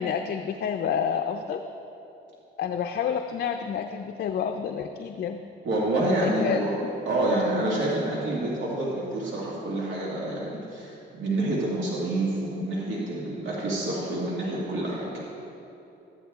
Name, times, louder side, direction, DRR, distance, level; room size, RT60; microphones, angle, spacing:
voice 1, 0.0-1.6 2.6-5.4 6.2-6.7, left 7 dB, 55° left, 5 dB, 0.5 m, -29 dB
voice 2, 5.6-6.7 7.1-15.1, right 1 dB, 75° right, -5 dB, 2.0 m, -27 dB
12.5 x 9.2 x 3.5 m, 2.9 s
cardioid pair, 90°, 20 cm